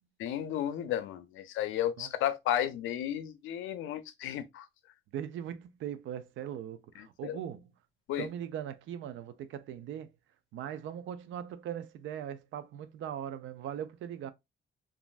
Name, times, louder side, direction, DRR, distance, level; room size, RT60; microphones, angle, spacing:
voice 1, 0.2-4.7 7.0-7.4 8.1-8.3, left 11 dB, 85° left, 0.5 m, -33 dB
voice 2, 5.1-7.7 8.2-10.1 10.5-14.3, right 10 dB, 75° right, 0.4 m, -40 dB
3.0 x 2.5 x 2.4 m
cardioid pair, 90°, 20 cm